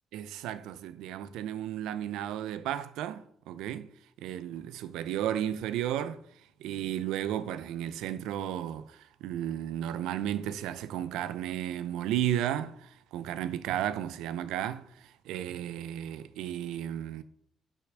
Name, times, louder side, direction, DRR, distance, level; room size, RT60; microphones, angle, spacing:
voice 1, 0.1-3.9 4.2-6.2 6.6-17.2, right 11 dB, 90° right, 0.6 m, -34 dB
6.5 x 5.9 x 6.6 m
cardioid pair, 75°, 0 cm